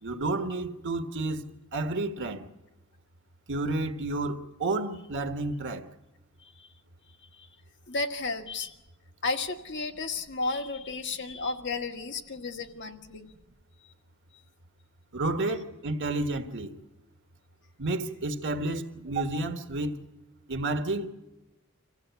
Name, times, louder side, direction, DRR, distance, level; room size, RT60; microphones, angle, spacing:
voice 1, 0.0-1.4 1.7-2.4 3.5-5.9 15.1-16.7 17.8-20.0 20.5-21.1, right 2 dB, 55° right, 1.5 m, -30 dB
voice 2, 7.9-8.7 9.2-13.3, left 3 dB, 55° left, 1.6 m, -33 dB
26.0 x 15.5 x 8.2 m
head